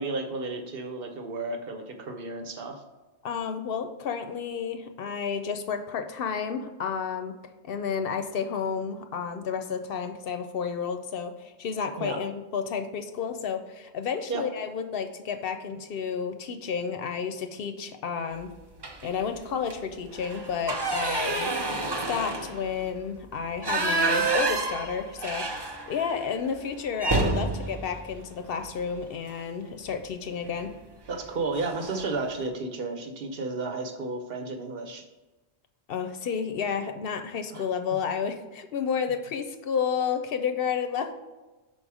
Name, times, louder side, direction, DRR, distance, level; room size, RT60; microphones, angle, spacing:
voice 1, 0.0-2.8 12.0-12.2 14.3-14.4 31.1-35.0 37.5-37.6, right 3 dB, 60° right, 5 dB, 1.0 m, -32 dB
voice 2, 3.2-7.4 7.6-18.5 19.0-21.5 22.1-30.7 35.9-41.1, left 6 dB, 65° left, 7 dB, 0.7 m, -31 dB
sound 1, 18.8-19.2 19.6-19.7 20.1-26.2 26.5-26.6 27.0-29.1 30.5-30.7 31.1-31.3 31.5-32.2, right 3 dB, 35° right, 0.4 m, -29 dB
5.7 x 3.9 x 4.8 m, 1.2 s
omnidirectional pair, 1.1 m